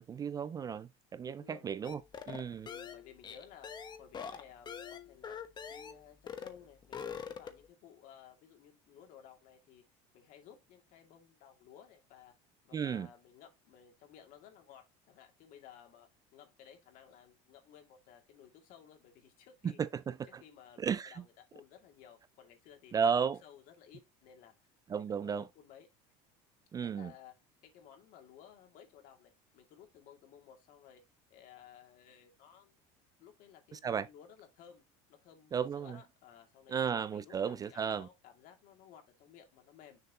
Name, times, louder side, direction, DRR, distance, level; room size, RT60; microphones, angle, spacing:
voice 1, 0.0-2.0 2.3-2.7 12.7-13.1 19.6-20.4 20.8-21.2 22.9-23.4 24.9-25.5 26.7-27.1 33.7-34.1 35.5-36.0 36.7-38.1, right 7 dB, 25° right, 0.3 m, -34 dB
voice 2, 1.2-1.7 2.6-3.7 4.0-5.4 5.7-9.8 10.1-12.3 12.6-19.8 20.3-22.9 23.4-25.9 26.8-27.3 27.6-31.0 31.3-32.8 33.2-34.8 35.1-36.8 37.1-40.0, left 9 dB, 60° left, 2.3 m, -57 dB
sound 1, 1.8-6.0 6.3-6.6 6.8-7.7, left 7 dB, 30° left, 1.1 m, -44 dB
6.6 x 4.4 x 4.1 m
supercardioid pair, 125°, 16 cm